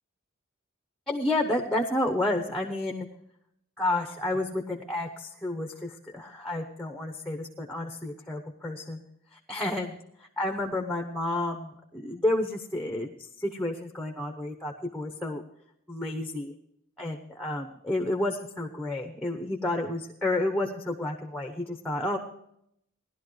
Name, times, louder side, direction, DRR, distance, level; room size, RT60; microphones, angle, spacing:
voice 1, 1.1-3.1 3.8-9.0 9.3-15.4 15.9-16.5 17.0-22.2, left 1 dB, 5° left, 3 dB, 0.9 m, -30 dB
18.5 x 11.5 x 3.2 m, 0.73 s
head